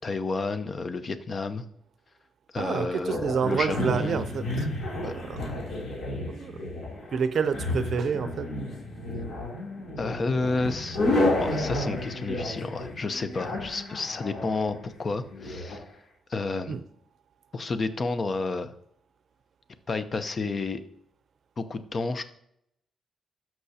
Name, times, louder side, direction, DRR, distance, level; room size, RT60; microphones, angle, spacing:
voice 1, 0.0-1.6 2.5-4.2 5.0-5.1 10.0-11.0 11.4-15.8 16.3-16.8 17.5-18.7 19.9-20.8 21.6-22.2, left 3 dB, 40° left, 10 dB, 0.8 m, -30 dB
voice 2, 2.6-4.7 4.9-5.4 6.3-6.7 7.1-8.5 16.7-16.8, right 6 dB, 60° right, 11 dB, 0.5 m, -28 dB
sound 1, 3.1-15.8, left 1 dB, 65° left, 3.1 m, -31 dB
13.0 x 6.0 x 2.8 m, 0.73 s
cardioid pair, 100°, 0 cm